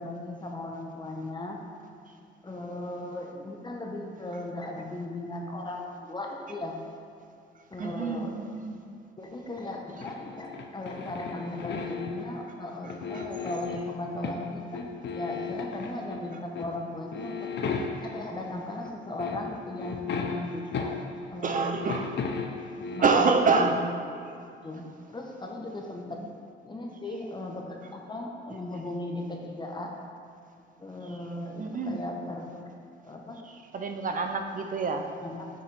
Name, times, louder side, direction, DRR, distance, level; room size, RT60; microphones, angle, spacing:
voice 1, 0.0-1.6 2.4-6.8 7.7-8.3 9.2-14.9 15.1-17.5 18.0-21.0 21.3-21.8 22.8-23.8 24.6-26.2 26.6-29.9 30.8-32.7 33.0-33.4 35.2-35.5, left 1 dB, 20° left, 0 dB, 1.0 m, -37 dB
voice 2, 7.8-8.8 13.1-13.2 21.4-22.1 23.0-23.9 31.6-32.0 33.7-35.1, right 4 dB, 40° right, 5 dB, 0.5 m, -26 dB
sound 1, 10.0-12.4 12.8-14.5 14.7-16.2 16.6-16.8 17.1-18.3 18.8-18.9 19.2-21.3 21.6-23.2, left 5 dB, 60° left, 0.6 m, -35 dB
6.9 x 5.6 x 3.4 m, 2.6 s
cardioid pair, 90°, 20 cm